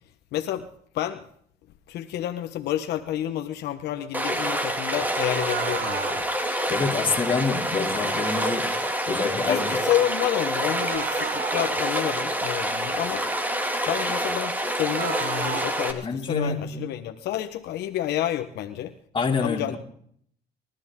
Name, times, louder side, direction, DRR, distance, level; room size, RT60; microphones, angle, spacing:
voice 1, 0.3-0.7 0.9-1.2 1.9-6.3 9.1-13.2 13.9-18.9 19.4-19.8, left 12 dB, 80° left, 6 dB, 1.2 m, -29 dB
Stream, 4.1-15.9, right 1 dB, 10° right, 2.4 m, -27 dB
sound 1, 5.2-6.2 10.7-11.7 14.8-15.7, right 9 dB, 55° right, 1.0 m, -33 dB
voice 2, 6.7-8.7 9.1-9.7 16.0-16.9 19.1-19.8, left 4 dB, 30° left, 2 dB, 3.0 m, -27 dB
26.0 x 13.0 x 3.8 m, 0.64 s
cardioid pair, 110°, 17 cm